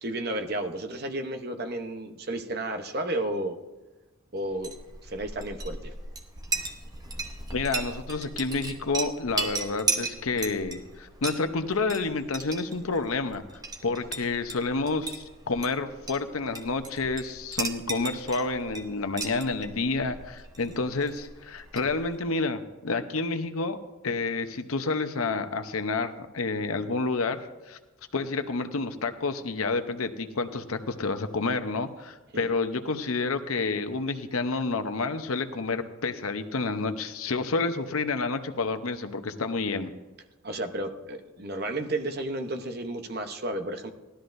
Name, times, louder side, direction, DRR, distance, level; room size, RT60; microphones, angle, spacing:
voice 1, 0.0-3.6 4.3-4.7 5.1-5.9 32.3-32.5 40.4-43.9, right 1 dB, 45° right, 6 dB, 0.8 m, -32 dB
Chink clink, 4.5-22.3, right 3 dB, 20° right, 0.9 m, -37 dB
voice 2, 7.5-13.4 13.8-27.4 27.7-27.8 28.1-39.9, left 3 dB, 85° left, 9 dB, 0.8 m, -29 dB
17.5 x 12.5 x 2.6 m, 1.1 s
head